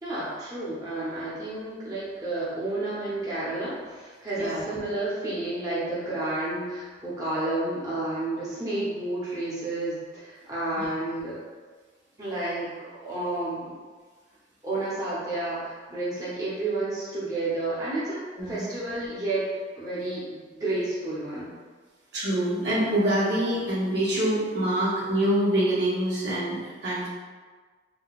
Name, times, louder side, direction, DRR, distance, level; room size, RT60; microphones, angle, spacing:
voice 1, 0.0-11.4 12.2-12.7 13.0-13.7 14.6-18.2 18.5-19.5 19.8-21.5, right 2 dB, 20° right, -10 dB, 0.7 m, -31 dB
voice 2, 18.4-18.7 22.1-27.1, right 1 dB, 65° right, -8 dB, 0.9 m, -25 dB
3.7 x 2.2 x 2.3 m, 1.5 s
head